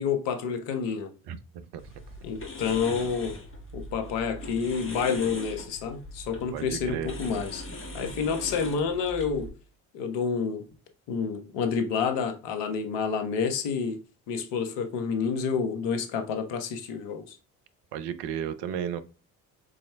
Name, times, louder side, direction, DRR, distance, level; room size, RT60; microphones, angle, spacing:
voice 1, 0.0-1.1 2.2-3.4 3.7-7.6 7.9-9.5 9.9-10.7 11.1-14.0 14.3-17.4, left 6 dB, 70° left, 1.2 m, -29 dB
voice 2, 1.3-1.8 6.5-7.1 17.9-19.0, right 9 dB, 60° right, 0.8 m, -33 dB
sound 1, 1.8-9.5, left 1 dB, 25° left, 1.8 m, -40 dB
5.2 x 4.2 x 2.2 m
hypercardioid pair, 55°, 45 cm